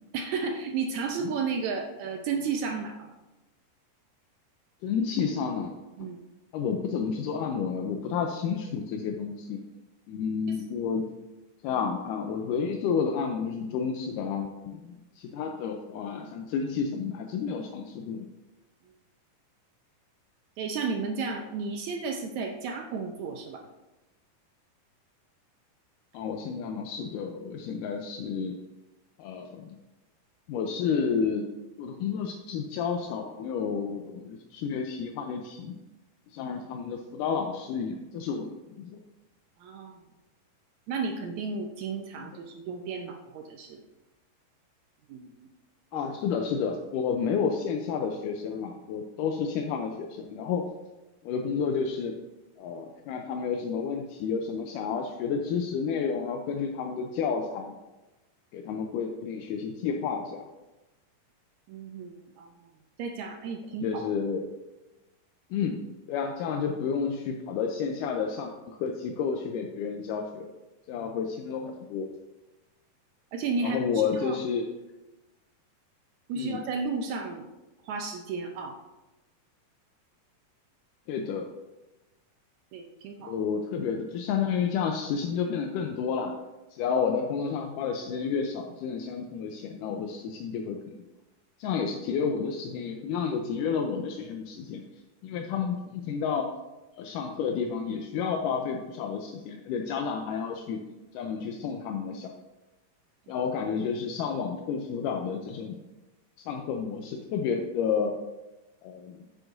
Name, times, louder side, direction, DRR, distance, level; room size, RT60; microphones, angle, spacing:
voice 1, 0.1-3.1 6.0-6.2 10.5-10.6 20.6-23.7 39.6-40.0 40.9-43.8 45.1-45.3 45.9-46.0 61.7-62.5 63.0-64.0 73.3-74.4 76.3-77.4 77.8-78.8 82.7-83.3 103.3-103.5, right 5 dB, 80° right, 3 dB, 1.7 m, -33 dB
voice 2, 4.8-5.7 6.0-6.1 6.5-9.6 10.1-11.1 11.6-18.3 26.1-28.6 29.2-29.8 30.5-31.5 31.8-35.8 36.3-39.0 42.2-42.3 45.9-50.6 51.2-52.2 52.6-57.8 58.5-60.5 63.8-64.5 65.5-65.8 66.1-70.5 70.9-72.1 73.6-74.7 76.4-76.6 81.1-81.5 83.2-86.3 86.7-91.0 91.6-94.8 95.2-96.5 97.0-100.8 101.1-102.3 103.3-105.8 106.4-108.1 108.8-109.3, left 6 dB, 80° left, 3 dB, 2.1 m, -31 dB
9.8 x 7.8 x 2.6 m, 1.0 s
omnidirectional pair, 3.9 m